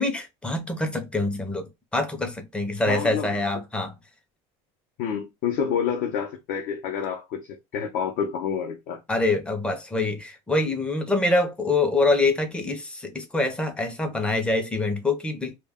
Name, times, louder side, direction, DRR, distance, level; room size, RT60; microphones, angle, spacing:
voice 1, 0.0-4.0 9.1-15.6, left 2 dB, 5° left, 0.4 m, -25 dB
voice 2, 2.9-3.3 5.0-9.0, left 7 dB, 60° left, 0.5 m, -28 dB
2.1 x 2.0 x 3.4 m
cardioid pair, 155°, 15 cm